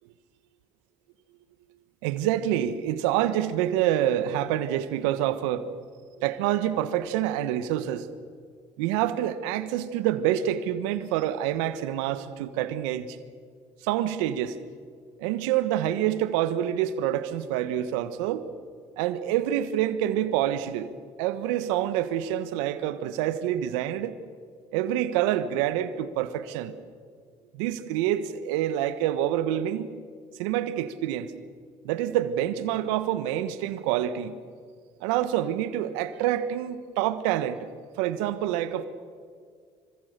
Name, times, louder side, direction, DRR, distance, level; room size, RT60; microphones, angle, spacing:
voice 1, 2.0-5.7 6.2-8.1 8.8-13.2 13.8-14.6 15.2-18.5 19.0-20.9 21.2-24.2 24.7-26.7 27.5-29.9 30.4-31.3 31.8-34.4 35.0-37.7 38.0-38.8, right 11 dB, 80° right, 1.4 m, -27 dB
26.0 x 25.0 x 6.8 m
hypercardioid pair, 65°, 15 cm